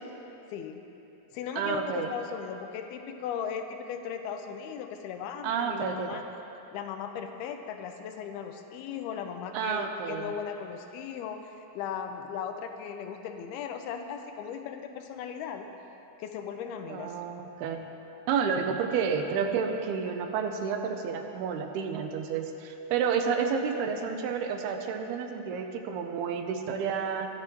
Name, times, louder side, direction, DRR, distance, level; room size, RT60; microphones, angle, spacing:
voice 1, 0.5-0.8 1.3-6.2 6.7-15.7 16.2-17.2, left 7 dB, 85° left, 6 dB, 2.5 m, -37 dB
voice 2, 1.6-2.1 5.4-6.1 9.5-10.3 16.9-17.9 18.3-27.3, right 6 dB, 85° right, 4 dB, 2.7 m, -30 dB
24.0 x 9.6 x 3.1 m, 3.0 s
omnidirectional pair, 4.5 m